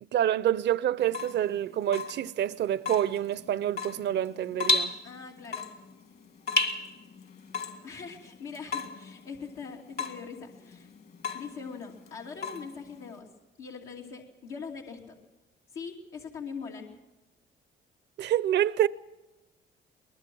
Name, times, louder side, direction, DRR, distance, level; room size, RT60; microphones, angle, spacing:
voice 1, 0.1-4.9 18.2-18.9, right 11 dB, 60° right, 0.6 m, -27 dB
Water tap faucet / Drip, 1.0-13.2, left 3 dB, 55° left, 2.3 m, -35 dB
voice 2, 5.0-5.7 7.8-10.9 11.3-13.3 13.6-15.2 15.7-17.0, left 5 dB, 85° left, 2.7 m, -42 dB
22.0 x 20.0 x 6.2 m
cardioid pair, 90°, 20 cm